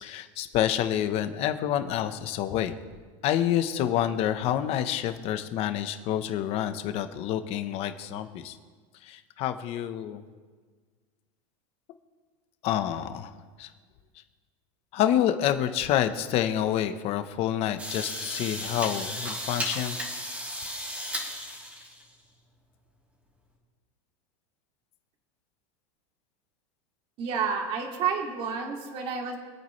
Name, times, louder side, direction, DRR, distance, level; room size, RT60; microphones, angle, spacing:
voice 1, 0.0-2.7 3.2-8.5 9.0-10.2 12.6-13.3 13.6-13.7 14.9-20.0, left 11 dB, 40° left, 9 dB, 1.1 m, -28 dB
sound 1, 17.8-22.1, equal, 10° right, 3.4 m, -35 dB
voice 2, 27.2-29.4, right 6 dB, 35° right, 1 dB, 2.5 m, -30 dB
26.0 x 8.9 x 3.3 m, 1.5 s
supercardioid pair, 155°, 16 cm